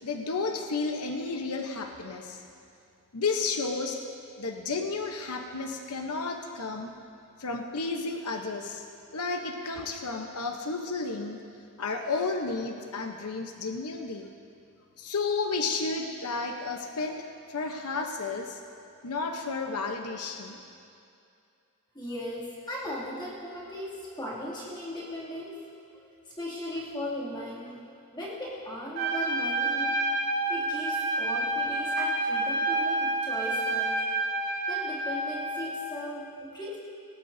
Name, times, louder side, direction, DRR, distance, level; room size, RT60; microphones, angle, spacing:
voice 1, 0.0-2.4 3.1-4.0 4.4-6.9 7.4-8.8 9.1-11.4 11.8-14.3 15.0-18.6 19.0-20.6, left 4 dB, 85° left, 4 dB, 0.9 m, -32 dB
voice 2, 21.9-25.6 25.9-30.1 30.5-34.0 34.7-36.8, left 1 dB, 20° left, -7 dB, 2.5 m, -38 dB
Trumpet, 28.9-35.7, right 2 dB, 50° right, 1.9 m, -29 dB
18.0 x 18.0 x 2.7 m, 2.5 s
head